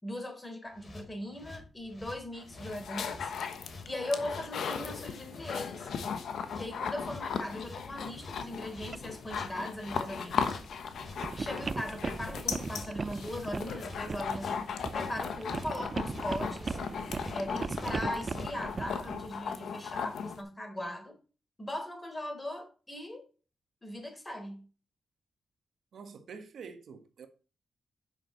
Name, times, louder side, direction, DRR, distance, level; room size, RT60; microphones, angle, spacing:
voice 1, 0.0-3.3 3.8-5.9 6.6-10.6 11.4-14.6 14.9-16.8 17.3-21.1 21.6-23.3 23.8-24.6, left 1 dB, 25° left, 4.1 m, -39 dB
sound 1, 0.7-18.5, left 2 dB, 45° left, 3.5 m, -49 dB
sound 2, 2.4-20.4, left 6 dB, 75° left, 1.2 m, -37 dB
sound 3, 2.8-3.4 3.8-3.9 5.9-6.0 6.7-19.3, right 4 dB, 45° right, 0.5 m, -39 dB
voice 2, 25.9-27.3, right 5 dB, 75° right, 1.3 m, -46 dB
8.9 x 6.1 x 4.0 m
supercardioid pair, 55°, 0 cm